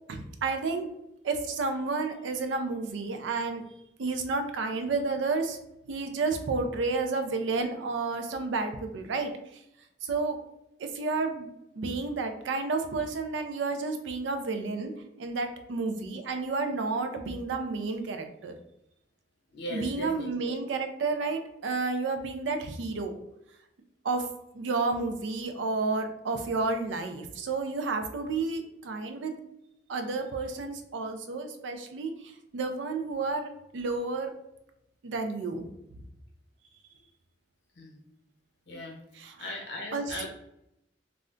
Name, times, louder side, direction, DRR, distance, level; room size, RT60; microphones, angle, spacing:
voice 1, 0.1-0.9 1.2-3.6 4.0-5.6 5.9-9.6 10.0-10.4 10.8-14.9 15.2-18.5 19.7-23.2 24.0-24.3 24.5-29.4 29.9-34.3 35.0-36.0 39.1-39.4 39.9-40.3, right 3 dB, 80° right, 6 dB, 0.4 m, -31 dB
voice 2, 19.5-20.5 37.8-38.0 38.7-39.0 39.4-40.3, left 1 dB, 65° left, 0 dB, 0.8 m, -38 dB
2.4 x 2.1 x 3.7 m, 0.85 s
head